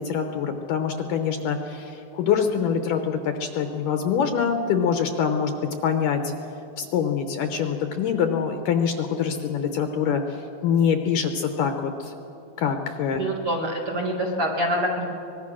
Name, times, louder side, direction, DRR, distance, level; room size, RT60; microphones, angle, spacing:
voice 1, 0.0-6.2 6.8-10.4 10.6-12.1 12.6-13.2, left 7 dB, 70° left, 6 dB, 2.2 m, -24 dB
voice 2, 13.1-15.1, equal, 45° right, -1 dB, 2.0 m, -26 dB
24.5 x 20.0 x 6.3 m, 2.8 s
omnidirectional pair, 4.6 m